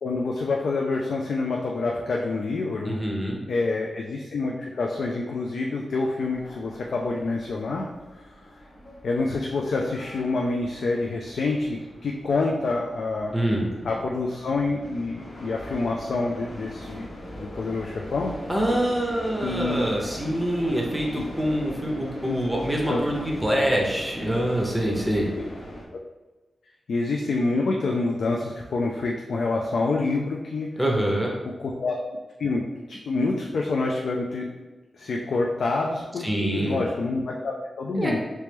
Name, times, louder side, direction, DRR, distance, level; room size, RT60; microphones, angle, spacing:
voice 1, 0.0-3.0 3.5-7.9 8.1-8.2 9.0-13.3 13.8-17.1 17.4-18.3 19.4-19.9 22.3-22.4 22.9-23.0 25.4-25.5 26.9-30.7 31.6-32.0 32.4-34.5 34.9-38.2, left 3 dB, 75° left, 0 dB, 0.3 m, -27 dB
voice 2, 2.8-3.4 13.3-13.7 18.5-25.3 30.8-31.3 36.2-36.8 37.9-38.2, right 1 dB, 5° right, -2 dB, 0.7 m, -25 dB
sound 1, 6.2-25.8, equal, 55° left, 0.9 m, -41 dB
3.1 x 3.0 x 3.4 m, 1.2 s
wide cardioid pair, 110°, 0 cm